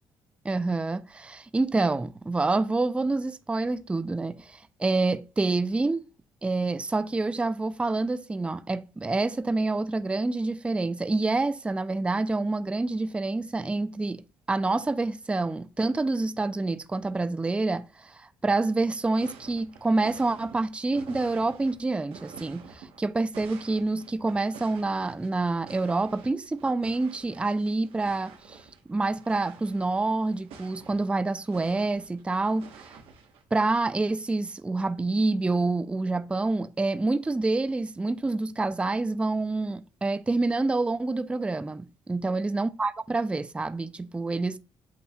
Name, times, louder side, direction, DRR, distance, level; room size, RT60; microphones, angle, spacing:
voice 1, 0.4-6.0 6.4-14.2 14.5-28.6 28.9-32.7 33.5-44.6, right 3 dB, 10° right, 0.3 m, -27 dB
sound 1, 19.2-33.5, right 5 dB, 85° right, 1.1 m, -49 dB
8.3 x 2.8 x 2.3 m
cardioid pair, 85°, 9 cm